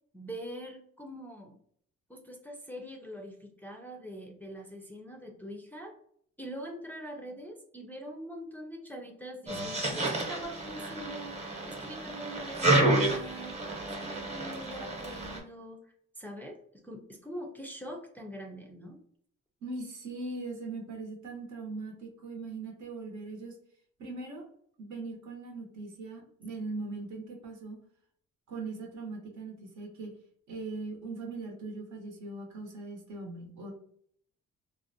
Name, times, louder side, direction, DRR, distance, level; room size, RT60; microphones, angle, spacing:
voice 1, 0.1-1.6 2.1-5.9 6.4-15.8 16.2-16.6 16.8-19.0, equal, 5° left, 0 dB, 0.4 m, -43 dB
sound 1, 9.5-15.4, right 1 dB, 20° right, 0.8 m, -30 dB
voice 2, 19.6-23.5 24.0-24.4 24.8-27.8 28.5-30.1 30.5-33.7, right 3 dB, 70° right, 1 dB, 0.8 m, -40 dB
2.5 x 2.1 x 2.6 m, 0.64 s
cardioid pair, 90°, 30 cm